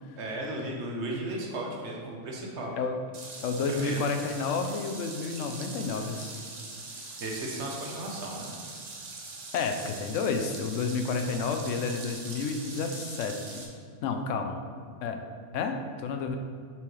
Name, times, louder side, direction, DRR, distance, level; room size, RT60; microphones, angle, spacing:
voice 1, 0.2-2.7 3.7-4.0 7.2-8.5, right 1 dB, 65° right, -1 dB, 1.2 m, -35 dB
sound 1, 3.1-13.7, right 3 dB, 40° right, 0.7 m, -42 dB
voice 2, 3.4-6.3 9.5-13.6 14.0-14.6 15.0-15.2 15.5-16.4, left 4 dB, 80° left, 5 dB, 0.9 m, -30 dB
6.9 x 4.5 x 3.2 m, 2.1 s
omnidirectional pair, 1.3 m